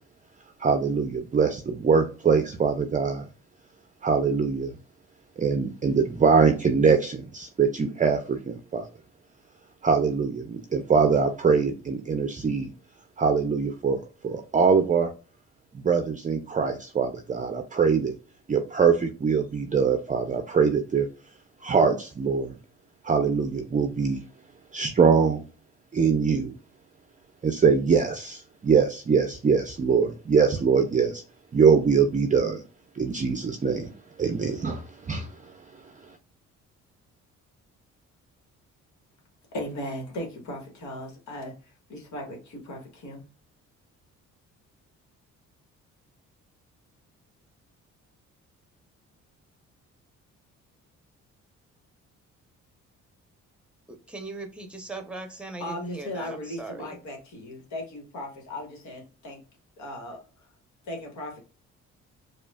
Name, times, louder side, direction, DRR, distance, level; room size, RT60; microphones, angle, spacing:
voice 1, 0.6-3.2 4.0-4.8 5.4-8.9 9.8-12.7 13.2-15.1 15.8-18.1 18.5-21.1 21.6-22.6 23.0-24.2 24.7-25.4 25.9-26.5 27.4-31.2 31.5-32.6 33.0-33.9 34.2-35.3, right 5 dB, 25° right, 6 dB, 0.5 m, -23 dB
voice 2, 39.5-41.5 41.9-43.2 55.6-59.4 59.8-60.2 60.9-61.4, left 1 dB, 70° left, 1 dB, 1.6 m, -37 dB
voice 3, 53.9-57.0, right 2 dB, 5° right, 5 dB, 0.8 m, -39 dB
4.7 x 2.5 x 2.3 m, 0.35 s
cardioid pair, 90°, 30 cm